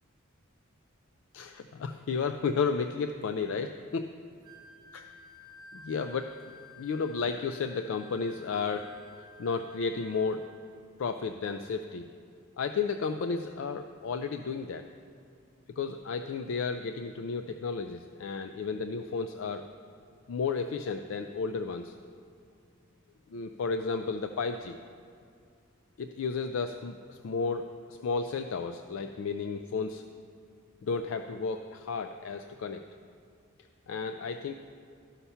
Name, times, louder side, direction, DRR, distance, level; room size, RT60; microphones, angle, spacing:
voice 1, 1.3-4.1 4.9-5.1 5.7-6.3 6.8-8.9 9.4-10.4 11.0-12.1 12.6-14.8 15.8-19.6 20.3-21.9 23.3-24.8 26.0-30.0 30.8-32.8 33.9-34.5, left 5 dB, 65° left, 7 dB, 0.3 m, -33 dB
Wind instrument woodwind instrument, 4.4-10.6, left 2 dB, 20° right, 0.7 m, -53 dB
12.5 x 5.7 x 5.6 m, 2.3 s
head